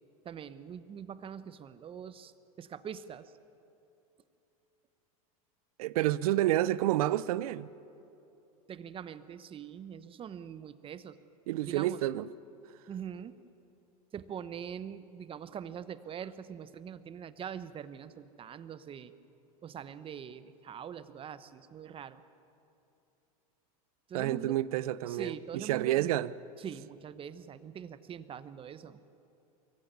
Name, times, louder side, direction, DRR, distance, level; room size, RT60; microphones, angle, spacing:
voice 1, 0.2-3.3 8.7-11.2 11.6-12.0 12.9-13.4 14.1-19.1 19.6-22.2 24.1-24.6 25.1-26.1 26.6-29.0, right 8 dB, 30° right, 1.0 m, -43 dB
voice 2, 5.8-7.7 11.5-12.3 24.1-26.3, right 14 dB, 75° right, 0.7 m, -29 dB
23.5 x 15.0 x 9.4 m
hypercardioid pair, 110°, 19 cm